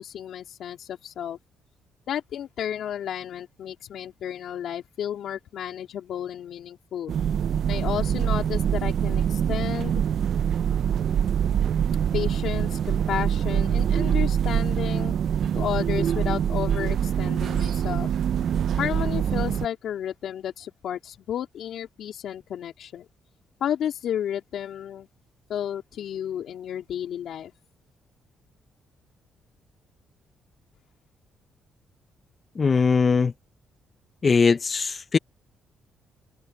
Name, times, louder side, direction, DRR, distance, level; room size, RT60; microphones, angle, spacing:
voice 1, 0.0-1.4 2.1-7.1 7.7-10.0 12.1-15.2 15.5-18.1 18.8-23.1 23.6-25.1 25.5-27.5, left 10 dB, 70° left, 4.0 m, -32 dB
sound 1, 7.1-19.7, right 8 dB, 65° right, 0.7 m, -24 dB
voice 2, 32.6-33.3 34.2-35.2, left 5 dB, 35° left, 0.9 m, -20 dB
cardioid pair, 90°, 0 cm